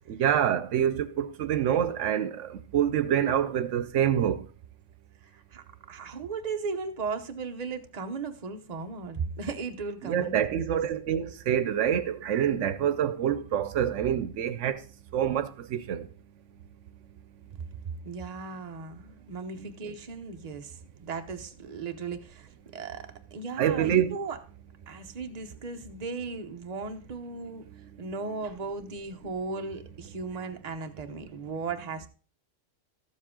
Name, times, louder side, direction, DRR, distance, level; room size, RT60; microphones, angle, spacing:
voice 1, 0.1-4.5 10.0-14.8 15.1-16.1 19.6-19.7 23.6-24.2, right 9 dB, 80° right, 1.0 m, -26 dB
voice 2, 5.2-10.8 17.5-17.6 18.0-24.4 24.9-27.7 28.0-32.1, right 4 dB, 35° right, 0.9 m, -36 dB
12.5 x 7.4 x 3.7 m
omnidirectional pair, 1.2 m